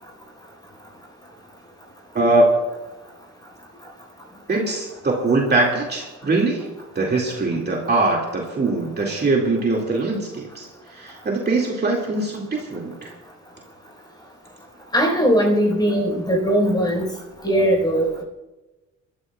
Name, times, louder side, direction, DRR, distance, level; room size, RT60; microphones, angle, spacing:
voice 1, 2.1-2.5 4.5-6.7 7.0-13.1, right 2 dB, 35° right, -1 dB, 2.3 m, -22 dB
voice 2, 14.9-17.1 17.4-18.2, equal, 15° left, 0 dB, 4.6 m, -19 dB
29.5 x 13.0 x 2.4 m, 1.1 s
cardioid pair, 90°, 30 cm